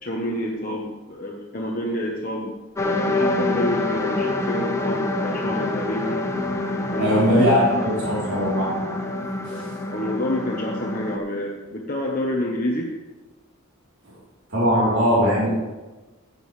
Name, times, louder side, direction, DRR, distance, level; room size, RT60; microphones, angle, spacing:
voice 1, 0.0-6.2 6.9-8.5 9.9-12.9, left 1 dB, 40° left, -2 dB, 1.1 m, -28 dB
sound 1, 2.8-11.2, left 2 dB, 15° left, 0.8 m, -26 dB
voice 2, 7.0-8.9 9.5-9.7 14.5-15.5, equal, 55° right, -8 dB, 3.7 m, -20 dB
15.0 x 9.2 x 3.3 m, 1.2 s
head